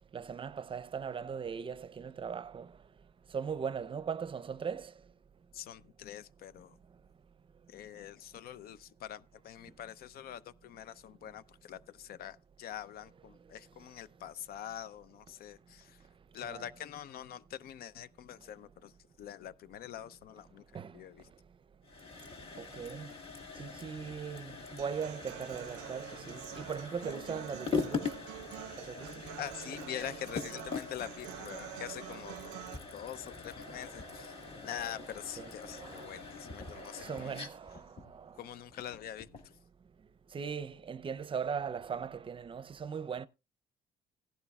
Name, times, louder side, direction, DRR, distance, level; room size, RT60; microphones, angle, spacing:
voice 1, 0.1-2.7 3.3-4.9 16.4-16.6 20.7-20.9 22.6-23.1 23.6-28.1 28.8-29.1 33.6-34.3 35.4-36.1 36.7-38.3 40.3-43.3, right 6 dB, 30° right, 0.6 m, -39 dB
voice 2, 5.5-6.8 7.7-16.0 16.3-18.9 19.2-21.3 29.4-32.4 32.9-34.4 34.6-37.4 38.4-39.6, left 10 dB, 65° left, 0.7 m, -45 dB
sound 1, 21.8-39.5, left 5 dB, 35° left, 1.7 m, -42 dB
Human voice / Acoustic guitar, 24.8-32.8, right 16 dB, 90° right, 0.5 m, -47 dB
16.5 x 11.0 x 2.4 m
cardioid pair, 110°, 17 cm